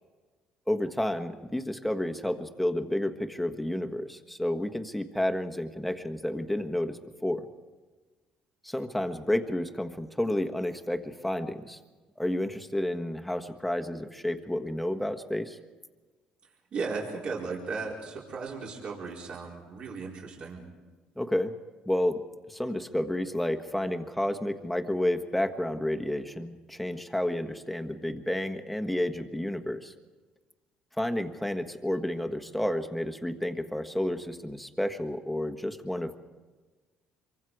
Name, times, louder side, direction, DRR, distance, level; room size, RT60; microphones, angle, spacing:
voice 1, 0.7-7.5 8.6-11.8 12.2-15.6 21.2-21.5 21.9-22.2 22.5-29.9 31.0-36.2, left 1 dB, 5° left, 6 dB, 1.5 m, -30 dB
voice 2, 16.7-20.6, right 4 dB, 50° right, -2 dB, 4.6 m, -36 dB
26.5 x 24.0 x 4.9 m, 1.3 s
cardioid pair, 100°, 2 cm